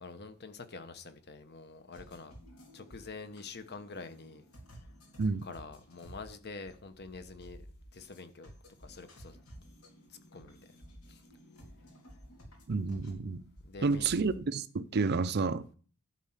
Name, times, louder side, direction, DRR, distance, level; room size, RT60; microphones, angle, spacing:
voice 1, 0.0-2.4 2.7-4.4 5.4-7.6 7.9-8.5 8.8-9.4 10.1-10.6 11.1-11.2 13.6-14.1, left 4 dB, 50° left, 1.1 m, -46 dB
sound 1, 1.9-14.4, equal, 80° left, 3.4 m, -53 dB
voice 2, 12.7-13.4 13.8-15.7, right 4 dB, 50° right, 0.5 m, -30 dB
11.5 x 4.4 x 7.3 m
head